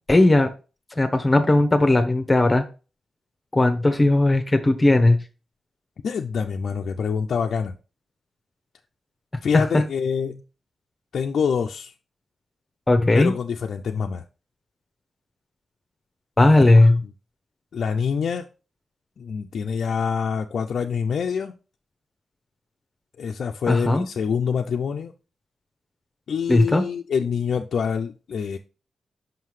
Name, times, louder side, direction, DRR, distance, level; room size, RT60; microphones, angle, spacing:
voice 1, 0.1-0.5 1.0-2.6 3.5-5.2 9.5-9.8 12.9-13.3 16.4-17.0 23.7-24.0 26.5-26.8, left 2 dB, 20° left, 0.8 m, -17 dB
voice 2, 6.0-7.7 9.4-10.4 11.1-11.9 13.1-14.2 16.7-16.9 17.7-18.5 19.2-21.5 23.2-25.1 26.3-28.6, left 6 dB, 70° left, 0.4 m, -26 dB
5.6 x 5.6 x 3.1 m
cardioid pair, 80°, 0 cm